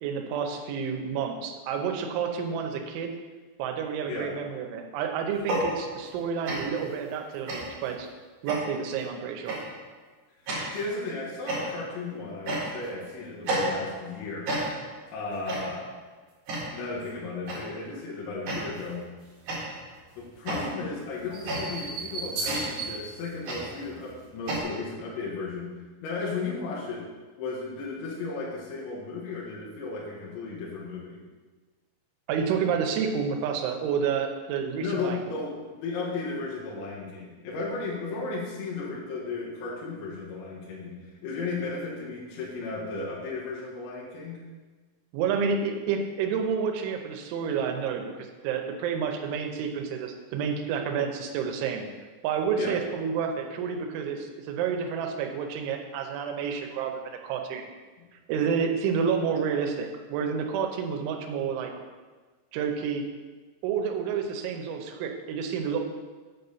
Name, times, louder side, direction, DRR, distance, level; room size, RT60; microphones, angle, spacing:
voice 1, 0.0-3.1 3.6-8.1 8.4-9.6 32.3-35.2 45.1-51.9 52.2-57.6 58.3-61.7 62.5-63.0 63.6-65.8, right 6 dB, 80° right, 4 dB, 3.2 m, -29 dB
sound 1, 5.3-6.2 6.5-6.9 7.5-7.9 8.5-8.9 9.5-9.8 10.5-10.9 11.5-12.0 12.5-13.0 13.5-14.1 14.5-15.0 15.5-15.9 16.5-16.9 17.5-17.8 18.5-19.0 19.5-24.6, right 1 dB, 50° right, 3.0 m, -32 dB
voice 2, 10.7-14.5 15.1-15.9 16.7-19.1 20.2-25.8 26.0-27.1 27.4-31.2 34.8-44.4 52.6-52.8, left 3 dB, 75° left, -6 dB, 3.6 m, -35 dB
8.5 x 4.1 x 6.8 m, 1.4 s
omnidirectional pair, 5.5 m